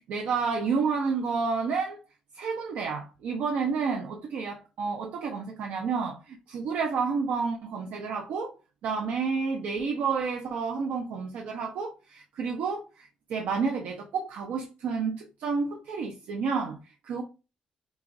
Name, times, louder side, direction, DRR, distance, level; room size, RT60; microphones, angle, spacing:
voice 1, 0.1-2.0 2.3-8.5 8.8-17.2, right 5 dB, 80° right, 0.8 m, -30 dB
6.1 x 2.5 x 2.6 m
cardioid pair, 165°, 3 cm